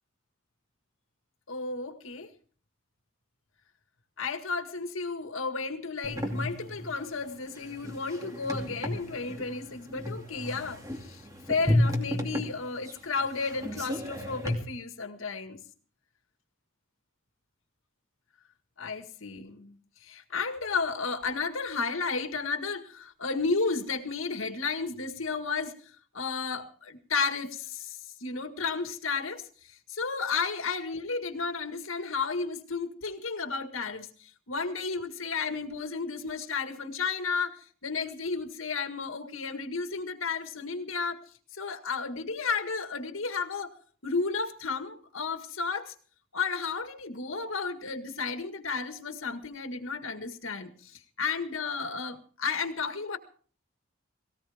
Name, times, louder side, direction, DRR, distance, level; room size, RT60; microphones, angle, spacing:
voice 1, 1.5-2.3 4.2-15.6 18.8-41.2 41.5-43.7 44.0-45.9 46.3-53.2, left 4 dB, 80° left, 1.8 m, -33 dB
sound 1, 6.0-14.5, left 1 dB, 15° right, 2.5 m, -32 dB
18.5 x 18.0 x 3.6 m
head